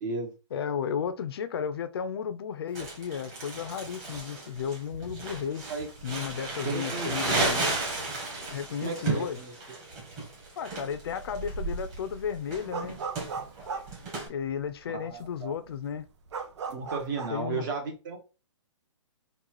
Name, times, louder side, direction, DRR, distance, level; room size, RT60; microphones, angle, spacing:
voice 1, 0.0-0.3 5.7-5.9 6.6-7.6 8.8-9.5 14.9-15.5 16.7-18.2, right 4 dB, 40° right, 1.3 m, -34 dB
voice 2, 0.5-5.6 6.0-7.7 8.5-9.4 10.6-13.0 14.3-16.0 17.3-17.6, left 7 dB, 50° left, 0.6 m, -33 dB
Crumpling crinkling, 2.7-14.3, right 3 dB, 15° right, 1.5 m, -34 dB
sound 1, 10.9-11.2 11.5-14.7 15.2-15.3 15.5-17.4, right 5 dB, 60° right, 0.8 m, -37 dB
4.0 x 2.4 x 4.6 m
hypercardioid pair, 165°, 16 cm